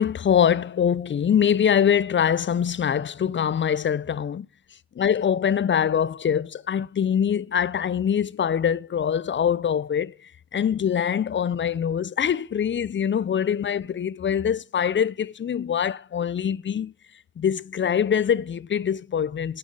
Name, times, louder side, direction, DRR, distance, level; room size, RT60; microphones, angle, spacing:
voice 1, 0.0-4.5 5.0-10.1 10.5-16.9 17.4-19.6, left 8 dB, 30° left, 0.4 m, -23 dB
10.5 x 7.7 x 4.8 m
cardioid pair, 80°, 40 cm